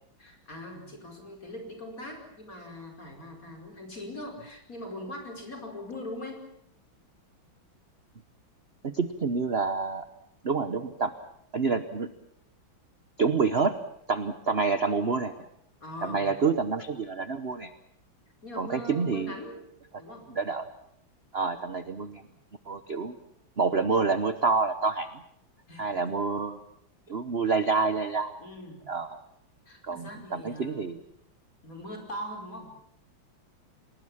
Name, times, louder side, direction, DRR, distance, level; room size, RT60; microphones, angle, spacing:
voice 1, 0.2-6.4 15.8-16.4 18.4-19.6 20.0-20.3 25.7-26.2 28.4-28.8 29.7-30.9 31.6-32.7, left 1 dB, 40° left, 3 dB, 5.5 m, -41 dB
voice 2, 8.8-10.0 10.4-11.1 11.5-12.1 13.2-13.7 14.1-15.5 16.0-17.7 18.6-19.3 20.4-20.7 21.3-22.2 22.7-23.1 23.6-25.2 25.8-26.6 27.1-28.3 28.9-29.2 29.8-31.0, right 4 dB, 40° right, 11 dB, 1.0 m, -27 dB
28.5 x 19.0 x 7.3 m, 0.74 s
omnidirectional pair, 2.2 m